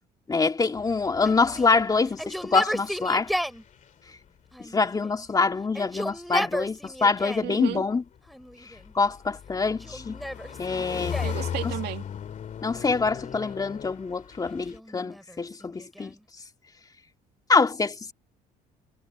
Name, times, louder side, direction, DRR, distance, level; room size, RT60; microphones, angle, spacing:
voice 1, 0.3-3.3 4.7-8.0 9.0-10.2 10.6-11.2 12.6-16.1 17.5-18.1, left 4 dB, 20° left, 2.2 m, -25 dB
sound 1, 0.7-2.7 3.0-4.2 5.3-5.5 7.6-14.8, left 8 dB, 50° left, 2.3 m, -37 dB
Yell, 1.2-3.6 4.5-5.3 5.6-7.5 8.3-8.9 9.6-11.4 12.8-13.7 14.5-16.2, equal, ahead, 4.5 m, -35 dB
voice 2, 7.4-7.8 11.2-12.0, right 15 dB, 75° right, 2.2 m, -33 dB
cardioid pair, 110°, 17 cm